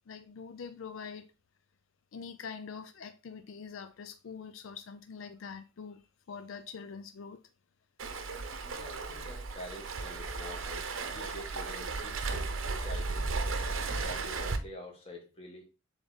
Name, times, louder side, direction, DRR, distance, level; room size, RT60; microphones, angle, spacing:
voice 1, 0.1-1.3 2.1-7.4 8.2-8.4 11.1-11.4, left 6 dB, 75° left, 0.4 m, -44 dB
Waves surf, 8.0-14.6, right 3 dB, 80° right, 0.8 m, -35 dB
voice 2, 8.6-12.5 12.8-13.3 14.0-15.6, equal, 30° left, 1.6 m, -47 dB
7.1 x 3.6 x 3.9 m
head